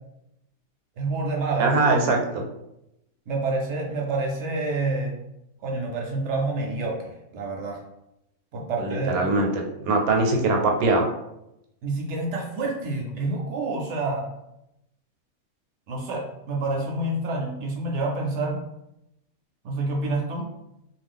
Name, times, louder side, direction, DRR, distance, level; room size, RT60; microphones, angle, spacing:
voice 1, 1.0-1.7 3.3-5.2 5.6-7.8 8.5-9.6 11.8-14.2 15.9-18.6 19.6-20.5, right 2 dB, 65° right, 0 dB, 0.8 m, -28 dB
voice 2, 1.6-2.5 8.8-11.0, right 3 dB, 85° right, 2 dB, 1.1 m, -22 dB
2.4 x 2.3 x 3.5 m, 0.87 s
omnidirectional pair, 1.5 m